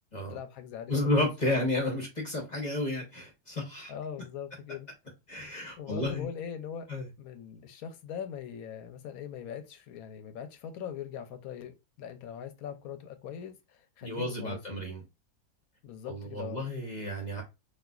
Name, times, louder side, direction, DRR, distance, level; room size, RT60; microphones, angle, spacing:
voice 1, 0.3-1.6 3.9-4.9 5.8-6.9 7.2-14.8 15.8-16.7, left 8 dB, 70° left, 1.0 m, -41 dB
voice 2, 0.9-3.9 5.3-6.3 6.9-7.1 14.0-15.0 16.1-17.4, left 1 dB, 35° left, 0.8 m, -31 dB
4.1 x 2.5 x 2.3 m
omnidirectional pair, 1.7 m